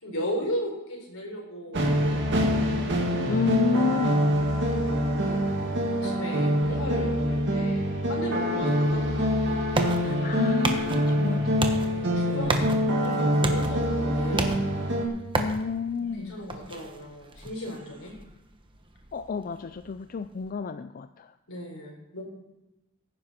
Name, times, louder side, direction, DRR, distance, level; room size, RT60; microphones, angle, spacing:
voice 1, 0.0-2.7 3.1-3.2 5.1-9.4 11.8-14.6 15.9-18.1 21.5-22.2, equal, 70° left, 1 dB, 4.3 m, -36 dB
sound 1, 1.7-15.1, equal, 55° right, 2.0 m, -25 dB
voice 2, 3.3-4.3 6.7-6.8 8.5-8.6 10.0-11.7 15.3-16.3 19.1-21.3, left 5 dB, 40° left, 10 dB, 0.4 m, -30 dB
sound 2, 9.0-20.5, right 2 dB, 25° right, 1.1 m, -34 dB
16.5 x 9.9 x 4.3 m, 0.98 s
head